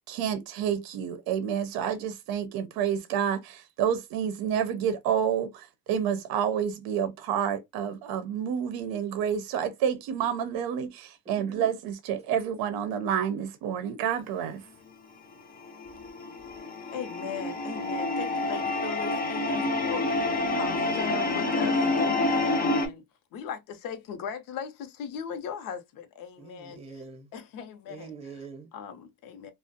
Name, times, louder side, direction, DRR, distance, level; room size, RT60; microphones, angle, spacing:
voice 1, 0.1-14.7, right 8 dB, 65° right, 0.6 m, -29 dB
voice 2, 11.2-11.7 26.4-27.3 27.9-28.7, right 4 dB, 15° right, 0.8 m, -44 dB
sound 1, 15.7-22.9, left 2 dB, 25° left, 0.5 m, -28 dB
voice 3, 16.9-20.3 20.6-23.0 23.3-26.8 27.3-28.1 28.7-29.5, left 7 dB, 60° left, 0.7 m, -38 dB
2.4 x 2.1 x 2.6 m
cardioid pair, 125°, 38 cm